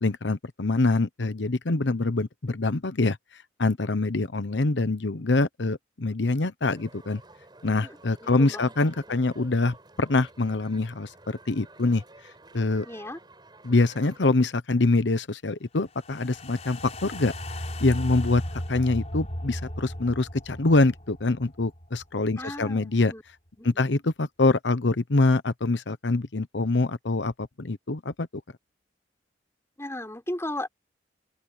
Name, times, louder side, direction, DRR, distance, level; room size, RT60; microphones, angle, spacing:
voice 1, 0.0-3.2 3.6-7.2 7.6-12.0 12.5-12.9 13.6-17.3 17.8-18.4 18.7-23.1 23.6-28.3, left 2 dB, 85° left, 1.0 m, -25 dB
sound 1, 6.7-14.4, right 2 dB, 25° right, 6.5 m, -52 dB
voice 2, 7.8-8.7 9.1-9.2 12.9-13.2 22.4-23.2 23.6-23.8 29.8-30.7, left 1 dB, 15° left, 5.7 m, -36 dB
sound 2, 16.0-22.4 22.7-22.8, left 1 dB, 40° left, 4.9 m, -36 dB
open air
head